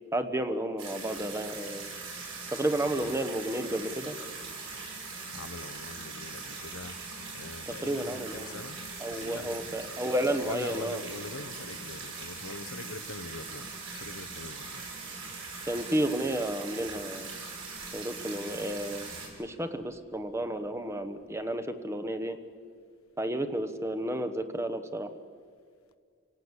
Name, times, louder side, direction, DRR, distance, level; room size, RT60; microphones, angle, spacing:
voice 1, 0.1-1.9 2.5-4.2 7.7-8.6 9.0-11.0 15.7-17.3 17.9-19.1 19.4-22.4 23.2-25.1, right 1 dB, 15° right, 9 dB, 1.1 m, -32 dB
sound 1, 0.8-19.3, right 4 dB, 65° right, 6.9 m, -41 dB
voice 2, 5.3-7.0 7.3-8.8 9.1-9.8 10.4-14.9, left 3 dB, 85° left, 11 dB, 1.1 m, -43 dB
30.0 x 18.0 x 8.2 m, 2.1 s
head